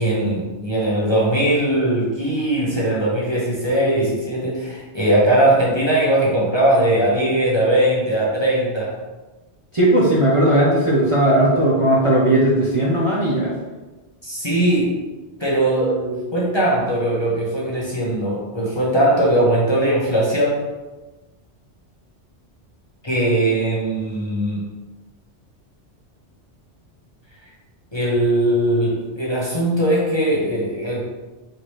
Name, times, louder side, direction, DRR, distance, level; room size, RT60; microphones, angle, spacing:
voice 1, 0.0-9.0 14.2-15.0 15.4-20.6 23.0-24.7 27.9-31.0, right 1 dB, 25° left, -6 dB, 0.8 m, -20 dB
voice 2, 9.7-13.5, right 1 dB, 30° right, -6 dB, 0.7 m, -17 dB
4.5 x 3.2 x 3.2 m, 1.2 s
omnidirectional pair, 1.2 m